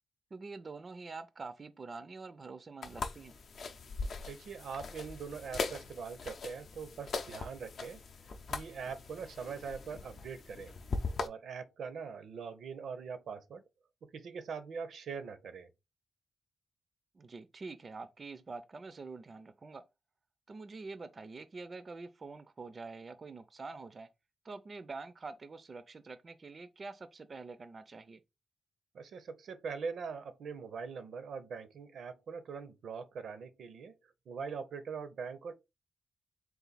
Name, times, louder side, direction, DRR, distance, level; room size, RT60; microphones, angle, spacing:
voice 1, 0.3-3.3 17.1-19.8 20.5-24.1 24.4-28.2, right 3 dB, 40° right, 0.4 m, -46 dB
sound 1, 2.8-11.3, left 4 dB, 60° left, 0.5 m, -41 dB
voice 2, 4.3-8.0 8.5-10.8 11.2-13.6 14.0-15.7 28.9-33.9 34.3-35.5, right 5 dB, 80° right, 0.6 m, -42 dB
3.9 x 2.4 x 4.0 m
wide cardioid pair, 115°, 0 cm